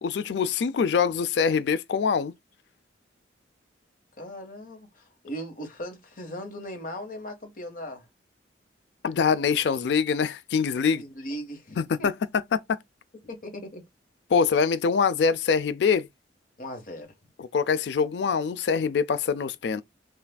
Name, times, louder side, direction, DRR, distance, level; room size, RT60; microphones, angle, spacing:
voice 1, 0.0-2.3 9.0-11.0 11.8-12.1 12.5-12.6 14.3-16.1 17.4-19.8, left 6 dB, 65° left, 0.4 m, -24 dB
voice 2, 4.2-8.1 10.8-12.1 13.3-13.8 16.6-17.1, equal, 45° left, 1.2 m, -38 dB
5.6 x 2.5 x 2.2 m
head